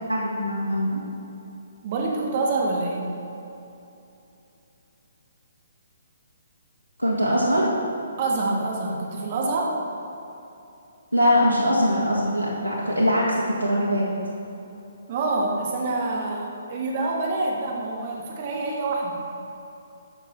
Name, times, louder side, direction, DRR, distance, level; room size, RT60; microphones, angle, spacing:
voice 1, 0.1-1.0 7.0-7.7 11.1-14.1, equal, 90° left, -6 dB, 1.8 m, -22 dB
voice 2, 1.8-3.1 8.2-9.8 15.1-19.2, right 3 dB, 40° right, -1 dB, 1.3 m, -26 dB
13.0 x 6.7 x 4.4 m, 2.9 s
figure-of-eight pair, 130°, 0 cm